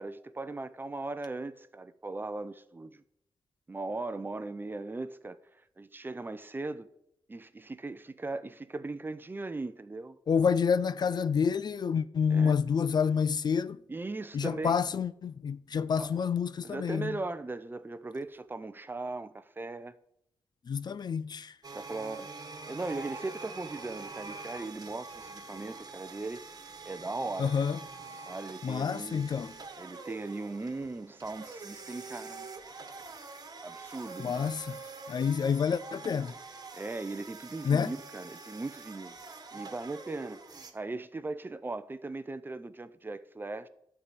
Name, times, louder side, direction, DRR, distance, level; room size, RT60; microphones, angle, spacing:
voice 1, 0.0-3.0 3.7-5.4 5.8-6.9 7.3-10.2 12.3-12.8 13.9-14.9 16.0-16.1 16.6-19.9 21.7-22.3 22.6-26.4 26.8-27.7 28.3-29.3 29.8-32.5 33.6-34.5 36.8-39.1 39.5-40.4 40.7-43.7, right 3 dB, 25° right, 0.7 m, -38 dB
voice 2, 10.3-13.8 14.3-17.2 20.7-21.5 27.4-27.8 28.6-29.5 34.2-34.8 35.1-36.3 37.6-37.9, left 6 dB, 50° left, 0.4 m, -28 dB
sound 1, 21.6-40.7, right 4 dB, 45° right, 1.5 m, -45 dB
11.5 x 4.8 x 8.5 m
wide cardioid pair, 115°, 9 cm